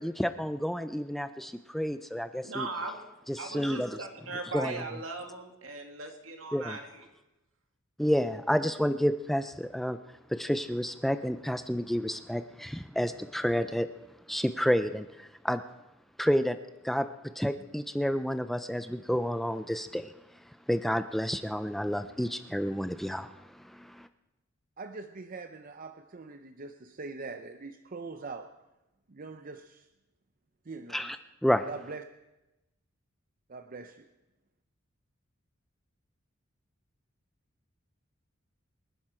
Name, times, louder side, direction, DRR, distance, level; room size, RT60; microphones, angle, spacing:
voice 1, 0.0-2.7 3.3-4.1 4.5-4.9 6.5-6.8 8.0-10.0 10.3-13.9 14.3-15.6 16.2-16.6 16.8-20.1 20.7-24.1 30.9-31.2 31.4-31.6, equal, ahead, 10 dB, 0.4 m, -30 dB
voice 2, 2.4-3.0 3.4-6.8, right 3 dB, 75° right, 3 dB, 2.3 m, -38 dB
voice 3, 24.8-28.5 29.1-29.9 30.7-31.0 31.7-32.0 33.5-34.1, right 3 dB, 40° right, 8 dB, 0.6 m, -42 dB
26.5 x 11.0 x 4.5 m, 0.98 s
head